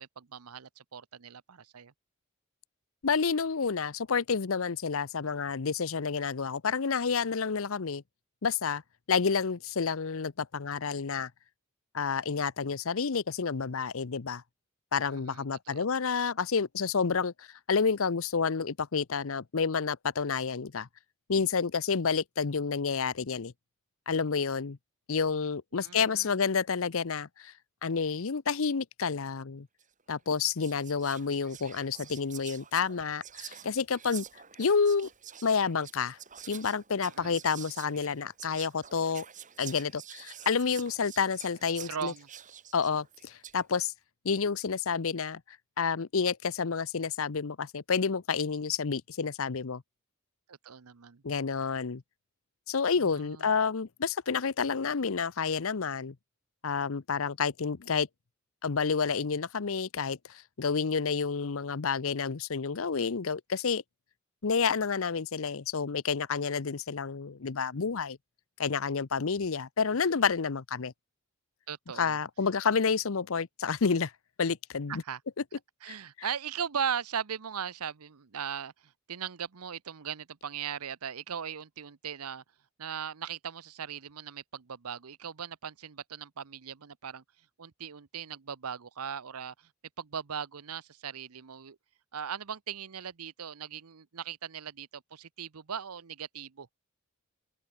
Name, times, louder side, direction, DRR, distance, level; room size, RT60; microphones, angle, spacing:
voice 1, 0.0-1.9 15.1-15.8 25.7-26.4 37.0-37.4 41.9-42.3 50.5-51.2 53.0-53.5 71.7-72.2 74.9-75.2 75.8-82.4 82.8-87.2 87.6-89.7 90.0-91.8 92.1-96.7, right 7 dB, 90° right, 0.8 m, -39 dB
voice 2, 3.0-8.0 8.4-8.8 9.1-11.3 11.9-14.4 14.9-20.9 21.3-23.5 24.1-24.8 25.1-27.5 27.8-29.7 30.1-34.2 34.6-35.1 35.4-36.2 36.5-39.2 39.6-42.1 42.7-43.9 44.2-45.4 45.8-49.8 51.2-52.0 52.7-56.2 56.6-58.1 58.6-63.8 64.4-68.2 68.6-70.9 72.0-74.1 74.4-75.0 75.9-76.0, left 5 dB, 65° left, 0.7 m, -29 dB
Whispering, 29.8-30.0 30.4-43.6, right 9 dB, 35° right, 4.6 m, -48 dB
open air
head